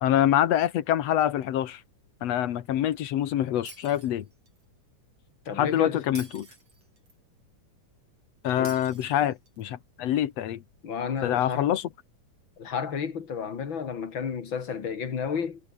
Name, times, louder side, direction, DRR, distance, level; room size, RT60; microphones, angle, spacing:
voice 1, 0.0-1.8 2.2-4.2 5.6-6.5 8.4-10.6 11.2-11.8, left 11 dB, 60° left, 2.1 m, -25 dB
Shatter, 3.7-4.6 6.2-7.2 8.7-9.6, right 3 dB, 50° right, 8.1 m, -48 dB
voice 2, 5.5-6.1 8.6-8.8 10.8-11.7 12.6-15.6, left 6 dB, 40° left, 2.7 m, -31 dB
omnidirectional pair, 3.7 m